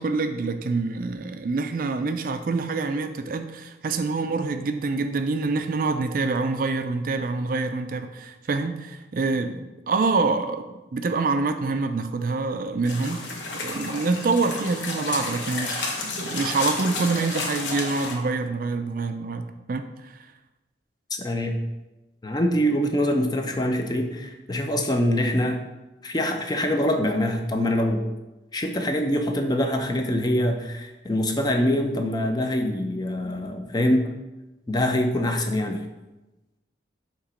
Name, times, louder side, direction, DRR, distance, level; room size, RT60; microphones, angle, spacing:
voice 1, 0.0-9.6 9.9-10.7 10.9-20.1, right 3 dB, 50° right, 8 dB, 0.4 m, -26 dB
sound 1, 12.8-18.1, left 3 dB, 85° left, 1.1 m, -31 dB
voice 2, 21.1-21.5 22.2-25.6 26.0-28.0 28.5-34.1 34.7-35.9, left 1 dB, 20° left, 4 dB, 0.5 m, -24 dB
7.0 x 3.0 x 5.0 m, 1.1 s
head